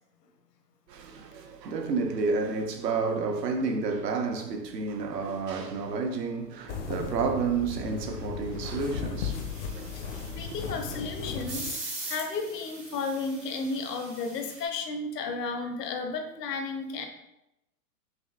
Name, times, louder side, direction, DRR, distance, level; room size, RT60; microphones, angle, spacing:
voice 1, 0.9-9.9, right 4 dB, 80° right, 0.8 m, -30 dB
sound 1, 6.7-11.7, left 6 dB, 45° left, 0.6 m, -36 dB
sound 2, 9.3-14.6, right 2 dB, 15° right, 0.5 m, -42 dB
voice 2, 10.3-17.1, left 4 dB, 75° left, 0.9 m, -33 dB
5.3 x 3.0 x 2.2 m
hypercardioid pair, 125°, 49 cm